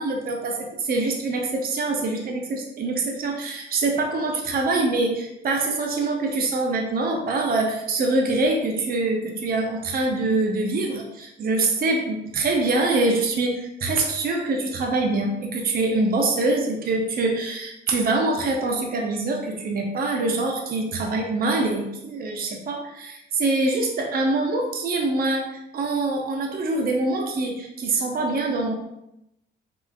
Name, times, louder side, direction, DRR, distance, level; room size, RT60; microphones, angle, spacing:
voice 1, 0.0-28.7, right 2 dB, 50° right, 1 dB, 0.6 m, -24 dB
3.1 x 3.1 x 2.3 m, 0.84 s
cardioid pair, 90°, 20 cm